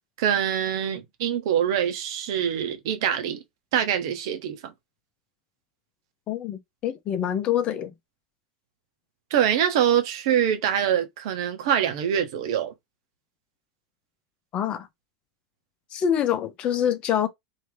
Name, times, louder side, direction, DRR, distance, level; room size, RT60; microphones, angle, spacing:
voice 1, 0.2-3.4 3.7-4.7 9.3-12.7, right 9 dB, 60° right, 1.0 m, -24 dB
voice 2, 6.3-7.9 14.5-14.9 15.9-17.3, left 9 dB, 40° left, 0.8 m, -25 dB
3.1 x 2.8 x 3.3 m
hypercardioid pair, 85°, 3 cm